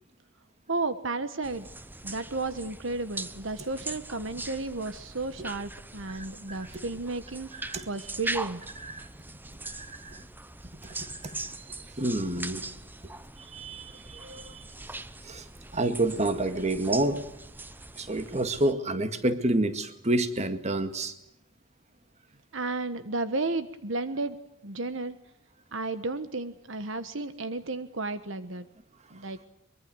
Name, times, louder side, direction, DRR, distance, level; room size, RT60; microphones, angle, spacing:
voice 1, 0.7-1.7 2.0-8.6 22.5-24.4 24.6-25.2 25.7-28.7 29.1-29.4, right 3 dB, 65° right, 11 dB, 1.3 m, -33 dB
sound 1, 1.4-18.7, right 2 dB, 10° right, 0.8 m, -41 dB
voice 2, 6.1-6.6 7.6-7.9 8.8-9.1 9.6-10.2 10.8-11.4 12.0-12.6 13.4-14.6 15.2-15.5 15.7-17.2 18.0-21.1, right 1 dB, 35° right, 10 dB, 2.0 m, -29 dB
23.5 x 23.5 x 7.8 m, 0.80 s
head